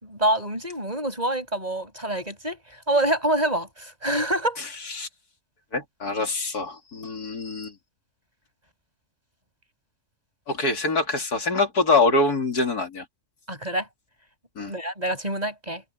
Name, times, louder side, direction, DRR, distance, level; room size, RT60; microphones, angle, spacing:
voice 1, 0.0-2.6 2.9-4.6 13.5-13.9 14.6-15.8, right 1 dB, 25° right, 6.9 m, -26 dB
voice 2, 5.7-7.7 10.5-13.1 14.6-14.7, left 3 dB, 90° left, 3.6 m, -24 dB
omnidirectional pair, 1.6 m